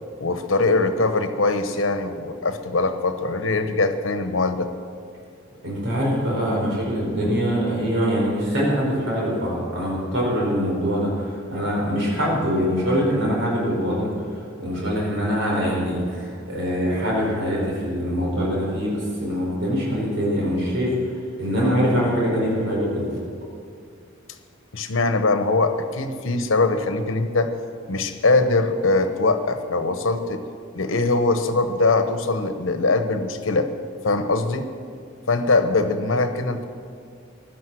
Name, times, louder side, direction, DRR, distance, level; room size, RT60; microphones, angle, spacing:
voice 1, 0.2-4.7 24.7-27.5 27.9-30.4 30.7-33.7 34.0-34.7 35.3-36.6, left 3 dB, 85° left, 9 dB, 1.1 m, -22 dB
voice 2, 5.6-23.1, equal, 70° right, -4 dB, 5.0 m, -23 dB
16.0 x 12.0 x 6.3 m, 2.3 s
head